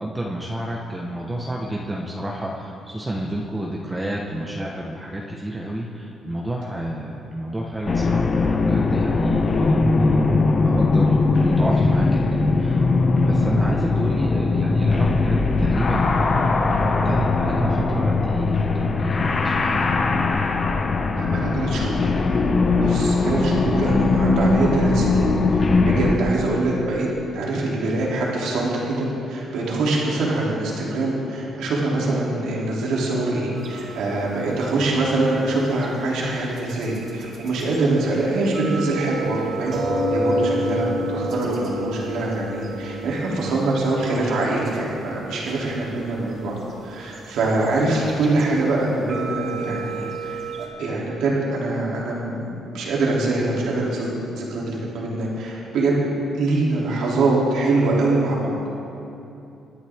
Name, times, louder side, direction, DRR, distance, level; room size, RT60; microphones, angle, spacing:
voice 1, 0.0-12.8 13.2-19.9, right 1 dB, 15° right, -2 dB, 1.3 m, -30 dB
sound 1, 7.9-26.2, left 3 dB, 40° left, 1.1 m, -20 dB
voice 2, 21.1-22.0 22.7-27.1 27.3-39.8 40.1-46.6 46.8-56.0 56.3-58.5, right 2 dB, 85° right, -5 dB, 3.1 m, -24 dB
sound 2, 33.6-37.9 38.1-38.2 38.4-48.5 48.8-50.7, right 1 dB, 65° right, 3.2 m, -31 dB
24.0 x 9.9 x 3.7 m, 2.8 s
cardioid pair, 90°, 0 cm